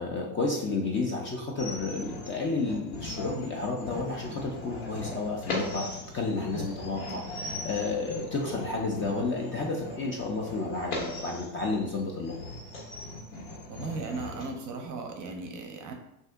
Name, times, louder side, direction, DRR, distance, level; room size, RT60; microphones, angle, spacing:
voice 1, 0.0-5.8 6.1-12.4, left 3 dB, 25° left, -1 dB, 0.4 m, -31 dB
sound 1, 1.6-14.5, left 2 dB, 80° left, 1.4 m, -39 dB
voice 2, 13.7-15.9, right 4 dB, 40° right, 4 dB, 0.6 m, -37 dB
2.7 x 2.6 x 3.4 m, 0.84 s
supercardioid pair, 105°, 50 cm